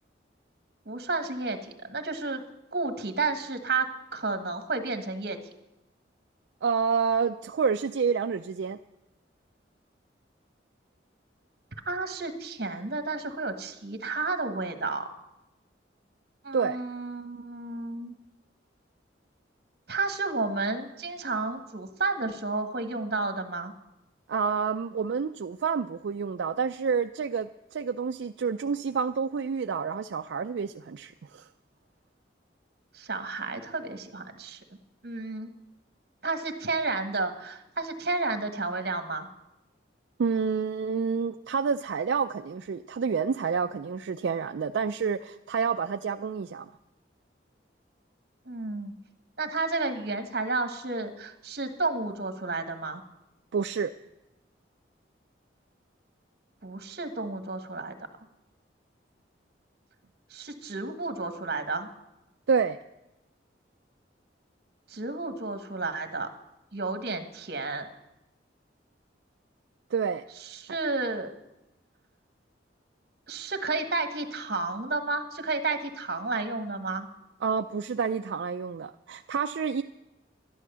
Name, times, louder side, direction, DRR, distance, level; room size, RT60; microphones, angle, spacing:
voice 1, 0.8-2.4 2.7-5.4 11.9-15.1 16.4-18.1 19.9-23.7 32.9-34.6 35.0-35.5 36.2-39.3 48.5-48.9 49.4-53.0 56.6-58.0 60.3-61.9 64.9-66.3 66.7-67.9 70.5-71.3 73.3-77.1, right 3 dB, 55° right, 8 dB, 1.4 m, -31 dB
voice 2, 6.6-8.8 16.5-16.8 24.3-31.4 40.2-46.7 53.5-53.9 62.5-62.8 69.9-70.2 70.7-70.8 77.4-79.8, right 5 dB, 80° right, 7 dB, 0.4 m, -28 dB
12.0 x 11.0 x 6.8 m, 0.94 s
head